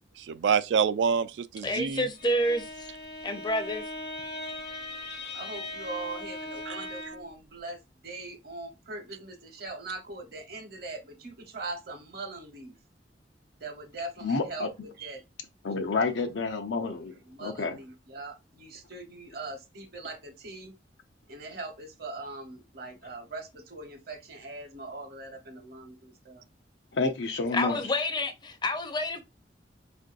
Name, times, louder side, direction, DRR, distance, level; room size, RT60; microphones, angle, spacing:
voice 1, 0.2-2.0 6.7-6.9, right 6 dB, 75° right, 0.3 m, -27 dB
voice 2, 1.6-2.9 3.2-3.8 27.5-29.2, left 1 dB, 25° left, 0.5 m, -29 dB
Bowed string instrument, 2.0-7.4, left 2 dB, 65° left, 0.9 m, -39 dB
voice 3, 5.3-7.8 8.0-12.7 13.6-14.7 15.0-15.2 16.8-20.7 21.3-26.4, right 3 dB, 60° right, 0.9 m, -41 dB
voice 4, 14.2-14.7 15.6-17.1 17.4-17.8 26.9-27.8, left 4 dB, 85° left, 0.5 m, -29 dB
4.5 x 2.5 x 2.4 m
head